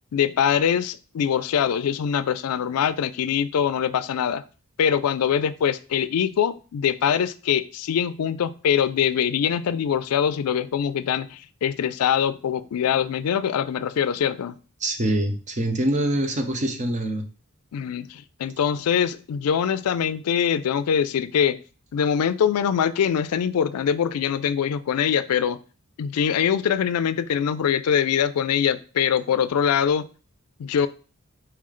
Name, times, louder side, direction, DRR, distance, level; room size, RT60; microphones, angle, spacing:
voice 1, 0.1-4.4 4.8-14.6 17.7-21.6 21.9-25.6 26.0-30.1 30.6-30.9, left 8 dB, 80° left, 14 dB, 0.4 m, -23 dB
voice 2, 14.8-17.2, right 1 dB, 35° right, 4 dB, 0.7 m, -24 dB
4.5 x 3.2 x 3.7 m, 0.36 s
head